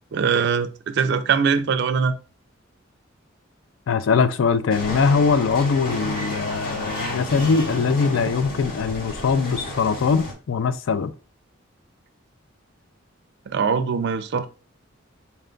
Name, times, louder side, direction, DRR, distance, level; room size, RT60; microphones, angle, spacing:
voice 1, 0.1-2.1 13.5-14.5, right 6 dB, 55° right, 0.4 m, -22 dB
voice 2, 3.9-11.1, left 5 dB, 70° left, 0.4 m, -21 dB
sound 1, 4.7-10.3, left 1 dB, 45° left, 1.0 m, -31 dB
4.2 x 2.2 x 3.7 m
head